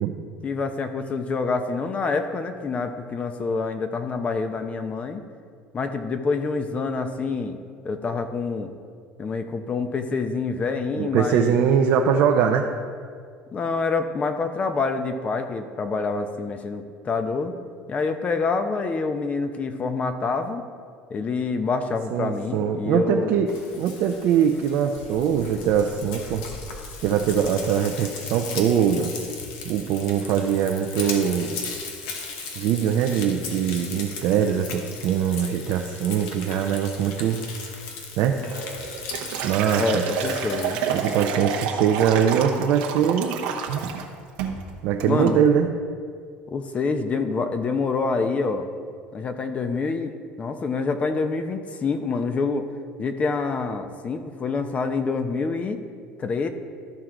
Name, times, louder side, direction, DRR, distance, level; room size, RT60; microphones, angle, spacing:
voice 1, 0.4-5.2 5.7-7.6 7.8-8.7 9.2-11.6 13.5-17.5 17.9-20.6 21.1-23.4 33.8-33.9 39.8-40.8 45.0-45.5 46.5-48.7 49.1-52.7 53.0-55.8 56.2-56.5, left 4 dB, 35° left, 8 dB, 0.7 m, -26 dB
voice 2, 11.0-12.6 22.1-23.5 23.7-26.5 27.0-29.1 29.6-31.6 32.6-37.4 38.2-38.4 39.4-40.0 40.9-43.4 44.8-45.7, right 8 dB, 65° right, 2 dB, 0.6 m, -22 dB
Frying (food), 23.5-41.3, left 4 dB, 80° left, 1.1 m, -37 dB
Liquid, 38.5-44.1 44.4-44.6 45.0-45.4, right 7 dB, 85° right, 0.9 m, -29 dB
13.0 x 4.6 x 3.8 m, 2.1 s
supercardioid pair, 95°, 4 cm